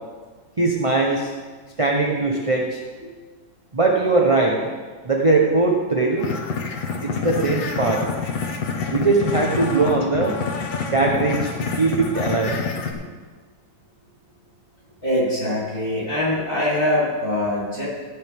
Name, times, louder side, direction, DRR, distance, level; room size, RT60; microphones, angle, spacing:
voice 1, 0.6-1.3 1.8-2.8 3.7-4.7 5.0-6.3 7.0-8.0 8.9-10.4 10.9-12.6, right 3 dB, 25° right, -1 dB, 0.7 m, -20 dB
sound 1, 6.2-12.9, left 5 dB, 90° left, 2.0 m, -27 dB
voice 2, 15.0-17.9, left 1 dB, 30° left, -8 dB, 4.2 m, -23 dB
15.5 x 9.4 x 3.6 m, 1.5 s
omnidirectional pair, 2.0 m